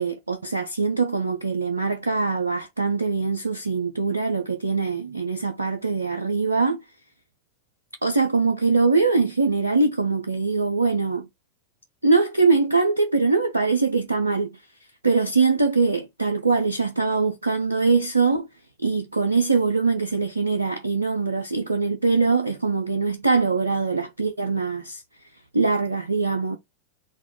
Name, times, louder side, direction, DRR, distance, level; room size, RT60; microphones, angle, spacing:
voice 1, 0.0-6.8 8.0-11.3 12.0-14.6 15.0-18.5 18.8-25.0 25.5-26.6, right 4 dB, 80° right, 0.5 m, -22 dB
4.1 x 2.3 x 4.3 m
figure-of-eight pair, 90°, 0 cm